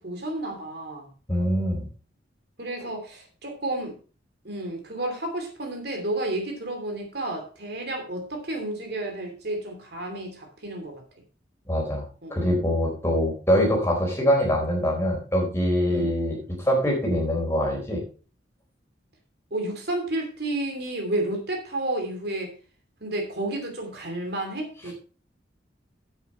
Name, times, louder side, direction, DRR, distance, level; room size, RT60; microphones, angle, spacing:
voice 1, 0.0-1.1 2.6-3.9 4.4-11.0 12.2-12.5 15.9-16.1 19.5-22.5 23.0-24.9, right 1 dB, 60° right, 3 dB, 2.8 m, -31 dB
voice 2, 1.3-1.9 11.7-12.0 12.3-16.4 16.6-18.0, equal, 15° left, -1 dB, 3.9 m, -23 dB
9.6 x 8.3 x 4.2 m, 0.37 s
head